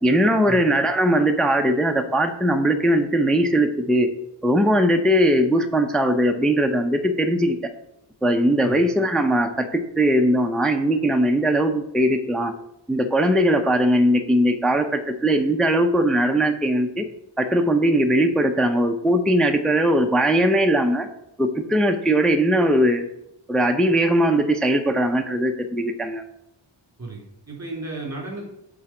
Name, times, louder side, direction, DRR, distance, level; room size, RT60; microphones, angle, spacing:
voice 1, 0.0-4.1 4.4-7.6 8.2-12.5 12.9-17.0 17.4-21.1 21.4-23.1 23.5-26.2, right 1 dB, ahead, 5 dB, 0.4 m, -20 dB
voice 2, 27.0-28.5, right 2 dB, 35° right, -2 dB, 3.0 m, -34 dB
7.5 x 3.8 x 5.9 m, 0.83 s
wide cardioid pair, 125°, 45 cm